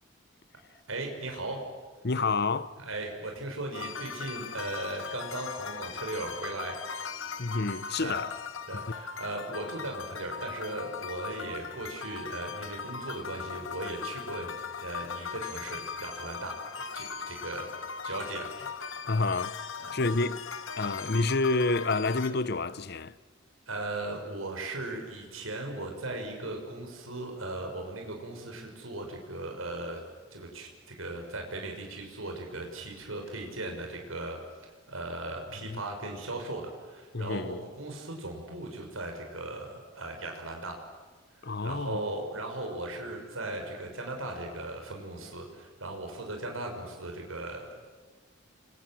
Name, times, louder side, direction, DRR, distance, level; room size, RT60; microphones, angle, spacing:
voice 1, 0.9-1.6 2.8-6.8 8.0-8.2 8.7-14.5 14.8-17.7 18.0-18.7 19.8-19.9 23.7-30.0 30.3-34.4 34.9-40.8 41.4-47.7, right 2 dB, 80° right, 6.1 m, -38 dB
voice 2, 2.0-2.8 7.4-8.3 8.7-8.8 19.1-19.6 19.9-20.4 20.8-23.1 35.7-35.8 37.1-37.6 41.4-42.0, left 3 dB, 50° left, 0.9 m, -29 dB
sound 1, 3.7-22.3, left 6 dB, 70° left, 1.8 m, -39 dB
29.0 x 25.5 x 7.7 m
head